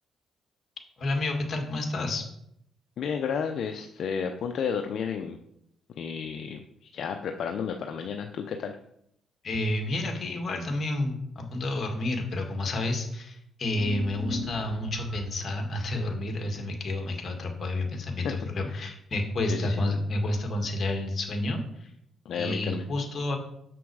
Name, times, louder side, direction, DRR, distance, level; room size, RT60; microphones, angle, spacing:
voice 1, 1.0-2.2 9.4-21.9 22.3-23.4, left 2 dB, 45° left, 3 dB, 1.9 m, -30 dB
voice 2, 3.0-5.4 5.9-8.8 18.2-18.3 18.7-18.9 19.4-19.8 22.3-22.9, left 6 dB, 65° left, 5 dB, 0.6 m, -32 dB
sound 1, 13.7-15.5, equal, 20° right, 1.6 m, -37 dB
7.1 x 6.0 x 4.8 m, 0.75 s
cardioid pair, 90°, 0 cm